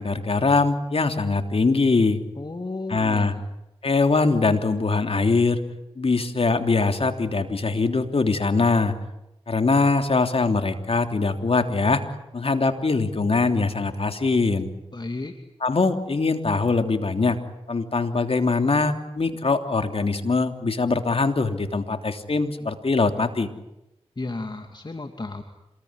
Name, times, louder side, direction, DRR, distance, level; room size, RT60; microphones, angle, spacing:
voice 1, 0.0-2.2 2.9-3.3 3.8-5.6 6.0-8.9 9.5-12.0 12.3-14.7 15.6-17.4 17.7-23.5, left 3 dB, 60° left, 7 dB, 3.2 m, -22 dB
voice 2, 2.4-3.4 14.9-15.4 24.2-25.4, left 2 dB, 40° left, 5 dB, 2.7 m, -33 dB
27.5 x 21.0 x 9.9 m, 0.90 s
cardioid pair, 40°, 11 cm